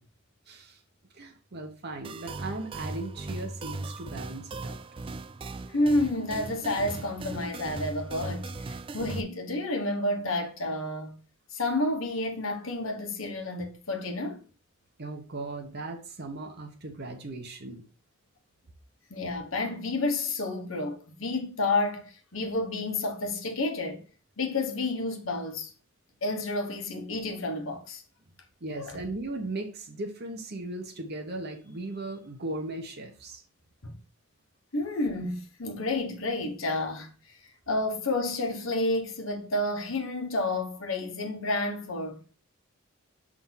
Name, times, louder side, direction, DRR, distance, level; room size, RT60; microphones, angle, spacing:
voice 1, 0.5-0.8 1.1-4.8 15.0-17.8 28.6-33.4, right 2 dB, 55° right, 1.0 m, -37 dB
sound 1, 2.0-9.2, right 2 dB, 25° right, 0.3 m, -38 dB
voice 2, 5.7-11.2 11.5-14.4 19.1-24.0 24.4-25.7 26.2-28.0 28.7-29.0 33.8-33.9 34.7-37.4 37.7-42.4, left 2 dB, 75° left, 1.3 m, -30 dB
5.9 x 3.7 x 5.6 m
head